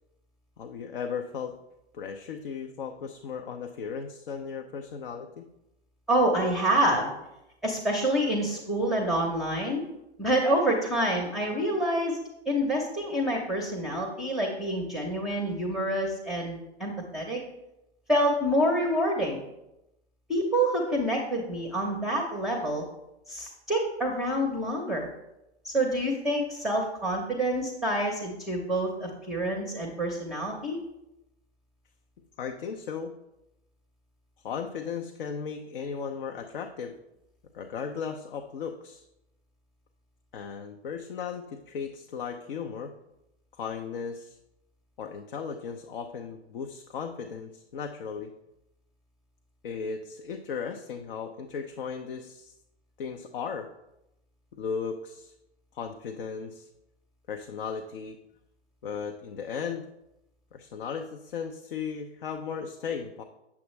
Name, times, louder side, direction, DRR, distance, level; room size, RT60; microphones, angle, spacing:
voice 1, 0.6-1.5 1.9-5.4 32.4-33.2 34.4-36.9 37.5-39.0 40.3-42.9 43.5-44.4 45.0-48.3 49.6-52.5 53.0-53.7 54.5-55.3 55.7-56.7 57.3-58.2 58.8-59.9 60.5-63.2, left 6 dB, 50° left, 4 dB, 0.7 m, -36 dB
voice 2, 6.1-7.1 7.6-9.8 10.2-12.2 12.5-17.4 18.1-19.4 20.3-22.8 23.3-25.1 25.6-30.8, right 1 dB, ahead, 0 dB, 0.8 m, -27 dB
8.5 x 7.2 x 3.2 m, 0.89 s
figure-of-eight pair, 120°, 34 cm